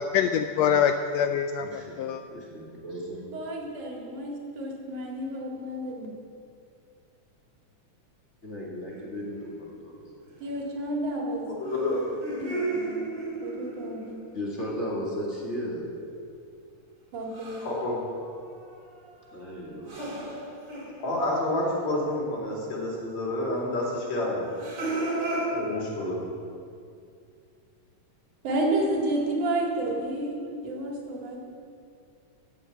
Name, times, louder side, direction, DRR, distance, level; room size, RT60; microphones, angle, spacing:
voice 1, 0.0-2.2, left 8 dB, 80° left, 7 dB, 1.5 m, -25 dB
voice 2, 1.6-2.0 2.3-3.2 8.4-9.9 14.3-15.8 19.3-20.2, equal, 25° left, -4 dB, 2.3 m, -35 dB
voice 3, 3.2-6.1 10.4-11.5 12.4-13.1 13.4-14.2 17.1-17.6 28.4-30.3 30.6-31.4, right 1 dB, 85° right, -1 dB, 3.6 m, -30 dB
sound 1, 8.9-9.7 11.7-14.3 17.3-17.9 18.2-21.9 22.3-22.4 24.4-25.5, right 2 dB, 35° right, 3.4 m, -34 dB
voice 4, 11.5-12.0 17.6-17.9 21.0-24.5 25.5-26.2, left 1 dB, 65° left, -4 dB, 4.3 m, -29 dB
14.5 x 7.0 x 8.5 m, 2.4 s
omnidirectional pair, 3.4 m